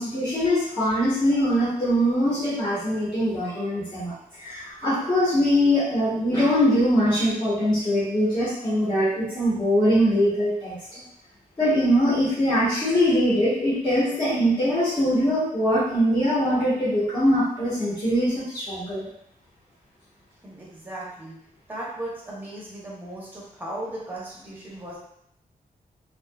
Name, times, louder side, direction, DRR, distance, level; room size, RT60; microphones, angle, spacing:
voice 1, 0.0-11.0 11.6-19.1, equal, 30° left, -10 dB, 1.0 m, -22 dB
voice 2, 20.4-21.4 21.7-25.0, right 1 dB, 10° right, -6 dB, 0.7 m, -36 dB
2.7 x 2.3 x 2.2 m, 0.72 s
wide cardioid pair, 180°, 15 cm